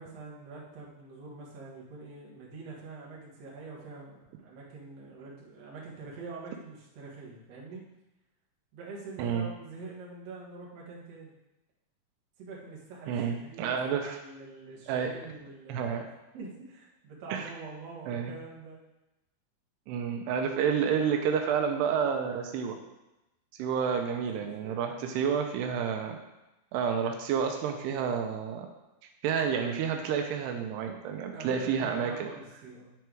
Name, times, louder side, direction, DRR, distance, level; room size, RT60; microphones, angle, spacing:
voice 1, 0.0-7.8 8.7-11.3 12.4-15.9 16.3-18.8 23.6-25.0 31.3-32.9, right 3 dB, 50° right, -4 dB, 2.2 m, -45 dB
voice 2, 9.2-9.5 13.1-14.2 14.9-15.1 15.7-16.1 17.3-17.5 18.1-18.3 19.9-22.8 23.6-26.2 26.7-28.7 29.2-32.3, right 7 dB, 85° right, 4 dB, 2.7 m, -30 dB
10.0 x 4.7 x 4.7 m, 0.96 s
omnidirectional pair, 4.8 m